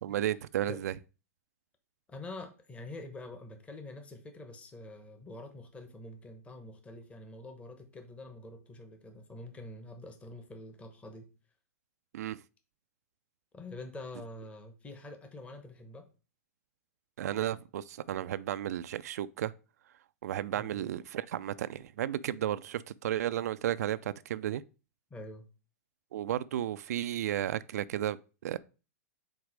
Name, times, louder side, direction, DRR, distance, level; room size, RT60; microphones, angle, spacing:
voice 1, 0.0-0.9 12.1-12.4 17.2-19.5 20.2-24.6 26.1-28.6, right 11 dB, 75° right, 0.3 m, -33 dB
voice 2, 2.1-11.3 13.5-16.1 20.5-20.9 25.1-25.5, left 2 dB, 15° left, 1.0 m, -46 dB
4.7 x 4.0 x 5.0 m
hypercardioid pair, 130°, 9 cm